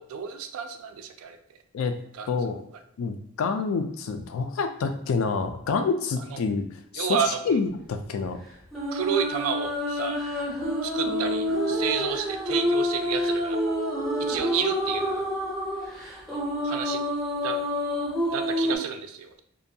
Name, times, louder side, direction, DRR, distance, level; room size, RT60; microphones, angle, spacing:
voice 1, 0.0-1.4 2.1-2.3 6.3-6.4 6.9-7.6 8.9-10.2 10.8-13.6 14.2-15.3 16.6-17.0 17.4-17.5 18.3-19.4, right 7 dB, 80° right, 7 dB, 0.3 m, -30 dB
voice 2, 3.0-6.6 6.9-7.2 7.5-8.4, left 4 dB, 75° left, 7 dB, 0.3 m, -27 dB
sound 1, 8.7-18.8, equal, ahead, 0.5 m, -28 dB
2.5 x 2.2 x 2.7 m, 0.74 s
head